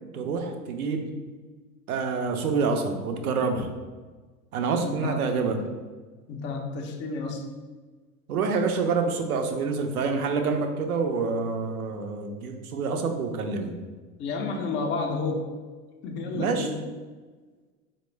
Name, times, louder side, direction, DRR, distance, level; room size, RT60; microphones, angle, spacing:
voice 1, 0.1-1.1 1.9-3.7 4.5-5.6 8.3-13.7 16.3-16.7, right 4 dB, 85° right, 5 dB, 0.6 m, -27 dB
voice 2, 4.8-5.2 6.3-7.4 14.2-15.5 16.0-16.8, left 3 dB, 30° left, 2 dB, 0.5 m, -31 dB
4.1 x 2.1 x 3.2 m, 1.4 s
hypercardioid pair, 90°, 43 cm